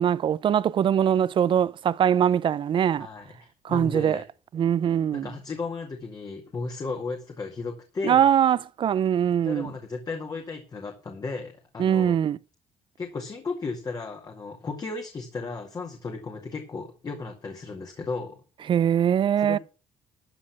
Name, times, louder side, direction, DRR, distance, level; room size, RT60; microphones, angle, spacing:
voice 1, 0.0-3.1 3.6-4.2 4.5-5.3 8.0-9.7 11.8-12.4 18.7-19.6, right 9 dB, 50° right, 0.5 m, -22 dB
voice 2, 3.0-4.2 5.1-8.3 9.4-12.2 13.0-18.4 19.4-19.6, left 4 dB, 35° left, 2.0 m, -35 dB
13.0 x 6.5 x 6.0 m
cardioid pair, 95°, 11 cm